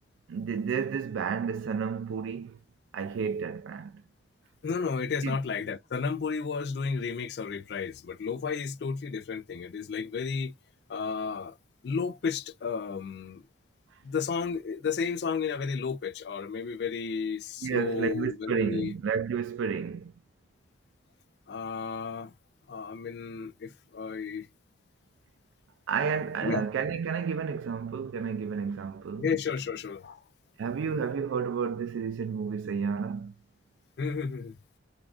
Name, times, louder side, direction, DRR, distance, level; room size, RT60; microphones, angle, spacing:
voice 1, 0.3-2.6 2.9-3.9 5.2-5.4 17.6-20.1 25.9-29.3 30.6-33.3, right 6 dB, 85° right, 0.3 m, -31 dB
voice 2, 4.6-10.5 10.9-11.6 11.8-13.4 14.0-18.9 21.5-22.3 22.7-24.5 26.4-26.6 29.2-30.2 34.0-34.6, left 5 dB, 60° left, 0.3 m, -32 dB
3.6 x 3.5 x 2.4 m
head